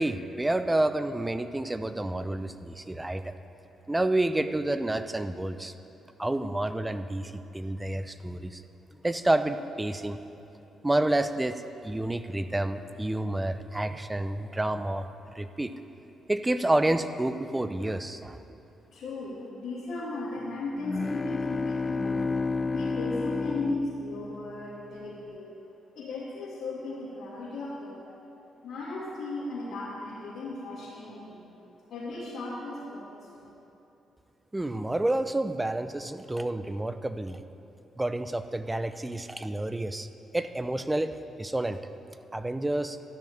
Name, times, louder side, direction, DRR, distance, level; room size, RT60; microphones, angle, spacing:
voice 1, 0.0-3.3 3.9-5.7 6.2-8.6 9.0-10.2 10.8-11.6 11.8-15.1 15.3-15.7 16.3-18.4 34.5-37.4 38.0-40.1 40.3-41.8 42.3-43.0, right 1 dB, 15° right, 11 dB, 0.7 m, -29 dB
voice 2, 18.9-22.3 22.7-25.5 25.9-28.1 28.6-31.4 31.9-33.5, left 2 dB, 75° left, -10 dB, 3.0 m, -36 dB
sound 1, 20.8-24.8, left 4 dB, 30° left, 0.4 m, -31 dB
13.0 x 6.3 x 9.1 m, 2.9 s
supercardioid pair, 70°, 0 cm